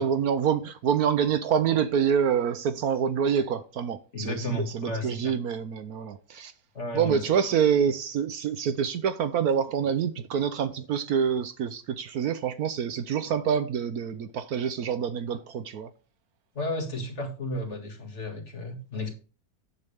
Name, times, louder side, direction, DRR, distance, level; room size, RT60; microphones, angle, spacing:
voice 1, 0.0-6.5 6.9-15.9, right 7 dB, 70° right, 1.1 m, -26 dB
voice 2, 4.1-5.3 6.3-6.4 6.7-7.3 16.5-19.1, left 2 dB, 45° left, 2.3 m, -33 dB
9.7 x 7.7 x 3.5 m
omnidirectional pair, 1.8 m